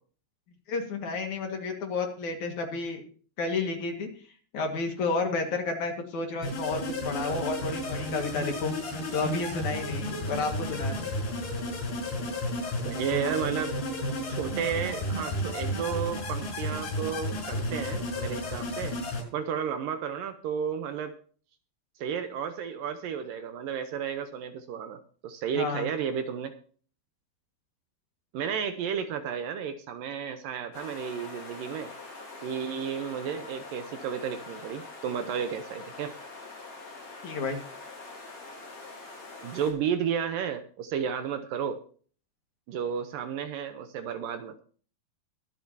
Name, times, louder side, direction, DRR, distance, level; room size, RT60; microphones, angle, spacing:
voice 1, 0.7-3.0 3.4-4.1 4.5-11.1 25.5-25.9 37.2-37.6, left 4 dB, 55° left, 3 dB, 2.9 m, -31 dB
sound 1, 6.4-19.2, left 1 dB, 85° left, 8.6 m, -32 dB
voice 2, 12.8-13.7 14.3-19.0 19.3-21.1 22.0-26.5 28.3-31.9 32.4-36.1 39.4-41.8 42.7-44.6, right 7 dB, 75° right, 9 dB, 2.3 m, -32 dB
sound 2, 30.7-39.7, left 3 dB, 40° left, 4.9 m, -44 dB
23.5 x 8.3 x 2.8 m, 0.43 s
omnidirectional pair, 4.5 m